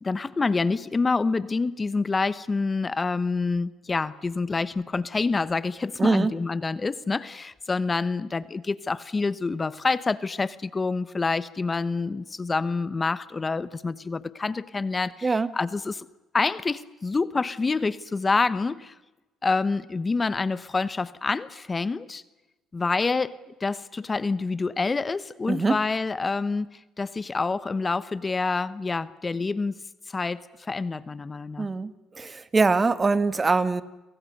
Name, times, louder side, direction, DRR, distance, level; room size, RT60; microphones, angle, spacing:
voice 1, 0.0-16.1 16.3-18.9 19.4-22.2 22.7-29.7 30.1-31.7, left 4 dB, 25° left, 17 dB, 1.0 m, -27 dB
voice 2, 6.0-6.3 15.2-15.5 25.5-25.8 31.6-31.9 32.2-33.8, right 4 dB, 25° right, 15 dB, 1.6 m, -23 dB
30.0 x 24.5 x 6.7 m, 1.1 s
cardioid pair, 90°, 0 cm